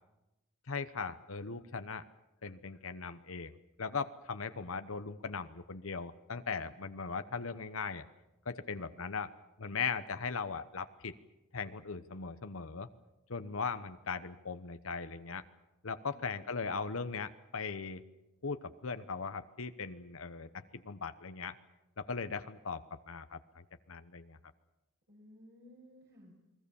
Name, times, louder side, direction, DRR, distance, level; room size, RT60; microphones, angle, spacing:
voice 1, 0.7-2.0 2.4-8.0 8.4-9.3 9.6-11.1 11.5-12.9 13.3-15.4 15.8-18.0 18.4-21.5 22.0-24.4, left 5 dB, 70° left, 10 dB, 1.0 m, -39 dB
voice 2, 8.7-9.0 25.1-26.3, left 1 dB, 50° right, -3 dB, 6.3 m, -58 dB
29.0 x 21.0 x 7.1 m, 0.96 s
head